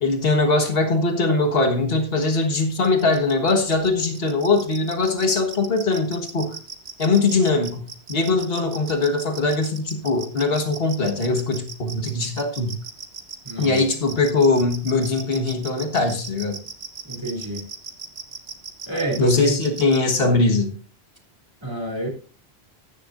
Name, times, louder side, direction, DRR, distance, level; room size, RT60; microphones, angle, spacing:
voice 1, 0.0-6.6 7.0-7.8 8.1-12.8 13.6-16.6 19.2-20.7, left 3 dB, 65° left, 3 dB, 1.8 m, -21 dB
sound 1, 2.8-20.0, right 5 dB, 85° right, 1.5 m, -37 dB
voice 2, 13.4-13.8 17.0-17.7 18.9-19.6 21.6-22.1, right 2 dB, 25° right, -1 dB, 3.3 m, -27 dB
15.0 x 10.0 x 2.6 m, 0.38 s
omnidirectional pair, 1.1 m